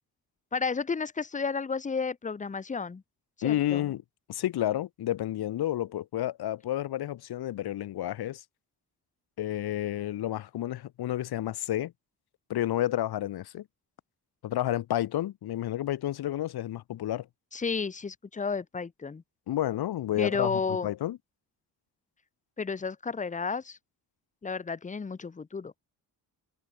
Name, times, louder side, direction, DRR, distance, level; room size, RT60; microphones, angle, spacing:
voice 1, 0.5-3.0 3.4-3.8 17.5-19.2 20.1-20.9 22.6-23.8 24.4-25.7, left 5 dB, 20° left, 0.7 m, -32 dB
voice 2, 3.4-4.0 4.3-8.4 9.4-11.9 12.5-13.6 14.4-17.3 19.5-21.2, left 13 dB, 70° left, 0.9 m, -30 dB
cardioid pair, 90°, 40 cm